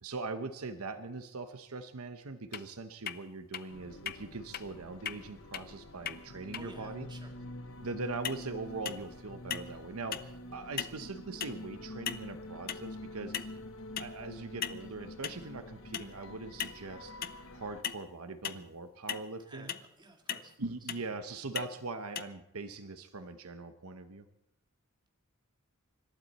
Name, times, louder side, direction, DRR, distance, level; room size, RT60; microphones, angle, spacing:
voice 1, 0.0-7.1 7.8-13.3 14.0-17.1 17.5-19.7 20.6-24.3, right 3 dB, 75° right, 9 dB, 0.9 m, -41 dB
sound 1, 2.5-2.6 3.1-3.2 3.5-3.6 4.1-4.2 4.5-4.6 5.1-5.2 5.5-5.6 6.1-6.2 6.5-6.6 8.2-8.4 8.9-9.2 9.5-9.8 10.1-10.3 10.8-11.0 11.4-11.6 12.1-12.3 12.7-12.9 13.3-13.6 14.0-14.1 14.6-14.8 15.2-15.4 15.9-16.1 16.6-16.8 17.2-17.4 17.8-18.0 18.4-18.7 19.1-19.2 19.7-19.9 20.3-20.5 20.9-21.1 21.6-21.7 22.2-22.3, left 9 dB, 45° left, 0.6 m, -37 dB
sound 2, 3.7-17.8, left 1 dB, 65° left, 1.2 m, -47 dB
voice 2, 6.5-7.3 19.5-20.5, right 2 dB, 20° right, 2 dB, 2.0 m, -52 dB
26.0 x 12.5 x 4.2 m, 0.85 s
head